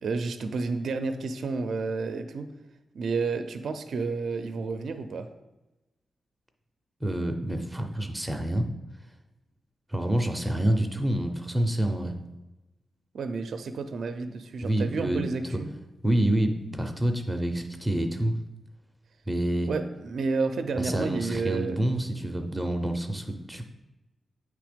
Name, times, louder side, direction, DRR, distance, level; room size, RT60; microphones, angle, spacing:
voice 1, 0.0-2.5 2.9-5.3 13.1-15.7 19.7-21.8, right 4 dB, 65° right, 8 dB, 0.4 m, -30 dB
voice 2, 7.0-8.7 9.9-12.1 14.6-15.2 16.0-18.4 19.3-19.7 20.8-23.7, right 1 dB, 5° right, 5 dB, 0.5 m, -27 dB
8.5 x 3.3 x 5.0 m, 1.0 s
wide cardioid pair, 170°, 0 cm